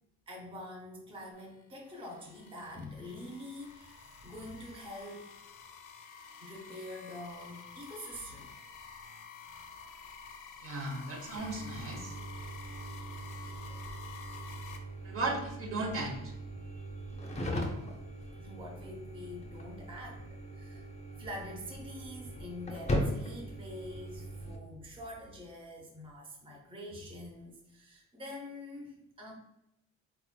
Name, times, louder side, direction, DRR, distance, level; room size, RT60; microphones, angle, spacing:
voice 1, 0.3-5.3 6.4-8.6 16.6-17.7 18.2-29.3, left 1 dB, 20° right, -1 dB, 0.7 m, -46 dB
sound 1, 1.4-14.8, left 6 dB, 85° left, 0.5 m, -50 dB
voice 2, 10.6-12.1 13.5-13.6 15.0-16.3, right 2 dB, 45° right, 1 dB, 0.9 m, -36 dB
sound 2, 11.4-24.6, equal, 20° left, 0.6 m, -40 dB
3.7 x 3.1 x 2.2 m, 0.87 s
cardioid pair, 90°, 30 cm